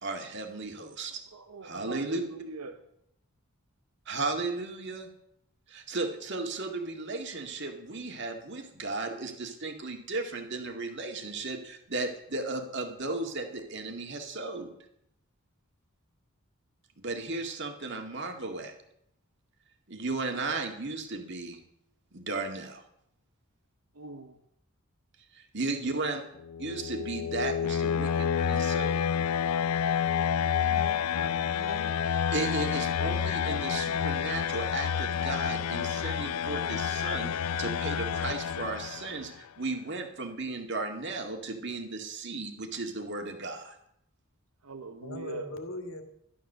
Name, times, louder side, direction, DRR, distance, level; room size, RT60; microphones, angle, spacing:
voice 1, 0.0-1.2 1.6-2.2 4.1-5.1 5.7-14.7 17.0-18.7 19.9-21.6 22.1-22.8 25.3-26.2 26.6-29.1 32.3-37.3 37.6-43.8, right 3 dB, 50° right, 2.0 m, -35 dB
voice 2, 1.3-2.8 23.9-24.4 44.6-45.6, right 3 dB, 85° right, 1.0 m, -42 dB
sound 1, 26.4-39.3, left 8 dB, 85° left, 0.4 m, -29 dB
voice 3, 30.6-32.0 45.0-46.0, left 2 dB, 60° left, 1.9 m, -41 dB
13.0 x 11.5 x 6.7 m
head